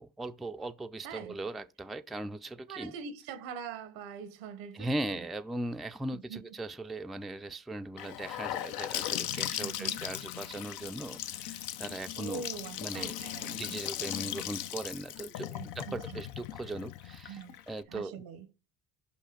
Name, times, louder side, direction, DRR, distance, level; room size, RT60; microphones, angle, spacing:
voice 1, 0.0-2.9 4.7-12.5 12.8-18.2, right 2 dB, ahead, 0.4 m, -39 dB
voice 2, 1.0-1.4 2.7-5.2 6.1-6.4 9.6-10.0 12.2-13.7 15.5-16.2 17.3-17.5 17.9-18.5, right 6 dB, 85° right, 1.1 m, -43 dB
Gurgling / Sink (filling or washing) / Bathtub (filling or washing), 8.0-17.8, left 12 dB, 70° left, 0.7 m, -38 dB
5.6 x 5.5 x 5.1 m
supercardioid pair, 70°, 40 cm